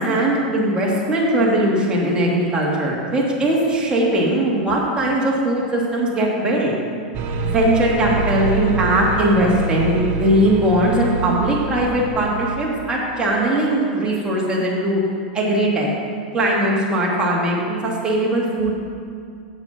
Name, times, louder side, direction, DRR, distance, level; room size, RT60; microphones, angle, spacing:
voice 1, 0.0-6.7 7.4-15.0 15.3-15.9 16.3-18.7, right 1 dB, 20° right, -4 dB, 2.5 m, -19 dB
sound 1, 7.1-12.9, right 3 dB, 45° right, 1.0 m, -26 dB
7.7 x 7.6 x 6.0 m, 2.3 s
hypercardioid pair, 105°, 5 cm